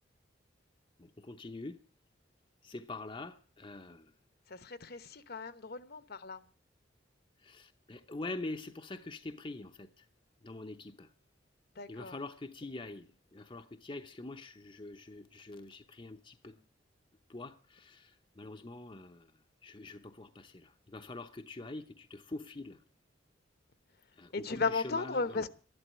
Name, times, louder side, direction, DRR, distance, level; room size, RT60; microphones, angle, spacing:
voice 1, 1.2-1.8 2.6-4.1 7.4-9.9 10.4-11.1 11.9-16.5 17.3-18.1 18.4-19.2 19.6-22.8 24.2-25.5, left 2 dB, 25° left, 0.7 m, -44 dB
voice 2, 4.5-6.4 11.8-12.1 24.3-25.5, left 4 dB, 55° left, 1.0 m, -35 dB
13.0 x 11.5 x 8.7 m
head